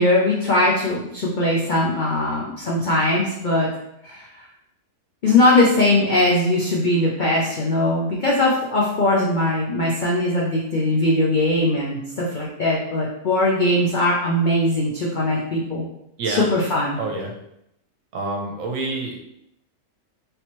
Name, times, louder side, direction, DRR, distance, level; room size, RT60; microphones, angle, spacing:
voice 1, 0.0-3.7 4.0-4.4 5.2-15.9 16.3-17.0, left 1 dB, 85° left, -4 dB, 0.4 m, -20 dB
voice 2, 17.0-17.3 18.1-19.4, right 3 dB, 65° right, 1 dB, 1.0 m, -27 dB
3.4 x 3.0 x 3.0 m, 0.79 s
omnidirectional pair, 1.6 m